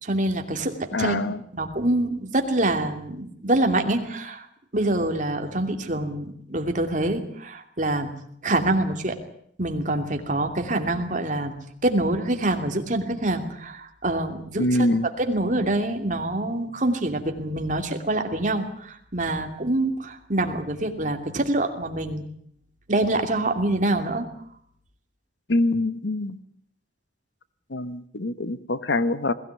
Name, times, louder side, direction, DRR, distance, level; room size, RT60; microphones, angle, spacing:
voice 1, 0.0-4.5 4.7-8.1 8.4-9.2 9.6-11.5 11.8-14.7 14.9-22.2 22.9-24.3, right 1 dB, 45° right, 5 dB, 2.7 m, -25 dB
voice 2, 0.9-1.4 14.6-15.1 25.5-26.4 27.7-29.3, left 2 dB, 85° left, 13 dB, 1.2 m, -24 dB
21.5 x 16.5 x 9.7 m, 0.67 s
head